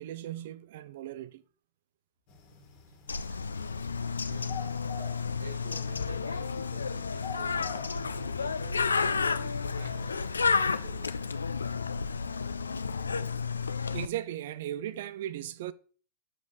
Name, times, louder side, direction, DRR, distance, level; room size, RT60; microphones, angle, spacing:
voice 1, 0.0-1.4 13.9-15.7, right 12 dB, 55° right, 0.4 m, -37 dB
sound 1, 2.3-10.6, left 5 dB, 45° left, 1.7 m, -49 dB
Bird, 3.1-14.1, left 5 dB, 75° left, 0.3 m, -31 dB
voice 2, 4.3-4.6 5.4-11.3, right 2 dB, 70° right, 1.5 m, -48 dB
6.2 x 5.1 x 4.0 m
figure-of-eight pair, 90°, 0 cm